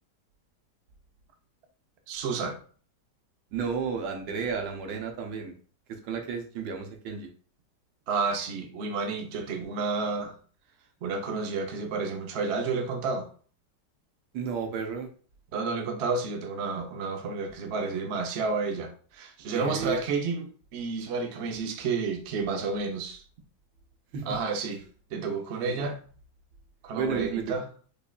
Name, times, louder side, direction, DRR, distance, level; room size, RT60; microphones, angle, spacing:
voice 1, 2.1-2.6 8.1-10.3 11.0-13.3 15.5-23.2 24.2-24.8 25.1-26.0 26.8-27.7, right 4 dB, 70° right, 0.6 m, -30 dB
voice 2, 3.5-5.5 6.0-7.3 14.3-15.1 19.5-20.0 24.1-24.4 25.6-25.9 27.0-27.6, right 6 dB, 85° right, 1.4 m, -32 dB
5.1 x 2.4 x 2.3 m
omnidirectional pair, 1.9 m